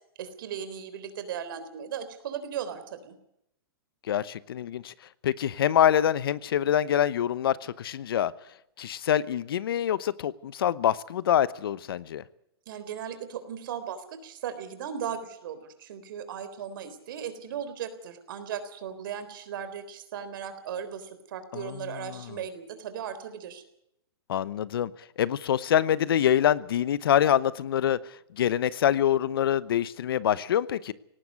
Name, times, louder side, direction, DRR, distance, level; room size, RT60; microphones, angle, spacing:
voice 1, 0.2-3.2 12.7-23.6, right 8 dB, 60° right, 11 dB, 3.8 m, -37 dB
voice 2, 4.1-4.9 5.2-8.3 8.8-12.2 21.5-21.7 22.0-22.2 24.3-24.9 25.2-30.9, left 10 dB, 70° left, 19 dB, 0.9 m, -25 dB
18.5 x 15.5 x 9.6 m, 0.78 s
hypercardioid pair, 135°, 13 cm